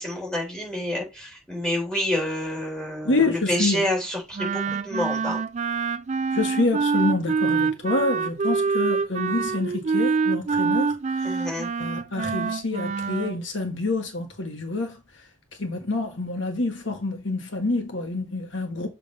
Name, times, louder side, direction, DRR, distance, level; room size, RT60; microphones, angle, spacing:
voice 1, 0.0-5.4 11.2-11.7, left 1 dB, 5° left, 3.6 m, -28 dB
voice 2, 3.0-3.8 6.3-11.5 11.8-15.0 15.6-18.9, left 2 dB, 75° left, 1.4 m, -27 dB
Wind instrument woodwind instrument, 4.3-13.4, right 5 dB, 35° right, 0.3 m, -25 dB
7.3 x 3.2 x 5.2 m
head